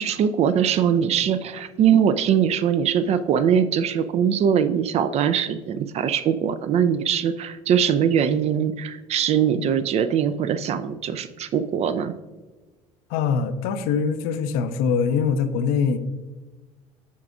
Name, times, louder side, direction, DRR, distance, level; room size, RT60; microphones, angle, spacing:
voice 1, 0.0-12.1, right 8 dB, 35° right, 12 dB, 0.4 m, -22 dB
voice 2, 13.1-16.0, left 6 dB, 55° left, 11 dB, 0.5 m, -23 dB
8.2 x 5.7 x 2.4 m, 1.2 s
figure-of-eight pair, 65°, 19 cm